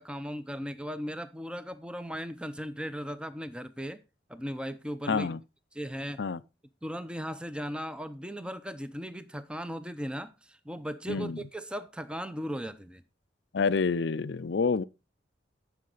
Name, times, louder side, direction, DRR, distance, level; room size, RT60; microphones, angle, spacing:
voice 1, 0.0-4.0 4.3-5.3 5.7-6.2 6.8-13.0, equal, 5° right, 0.7 m, -37 dB
voice 2, 5.1-5.4 6.2-6.4 11.1-11.4 13.5-14.8, left 5 dB, 65° left, 0.5 m, -28 dB
14.0 x 6.0 x 4.0 m
head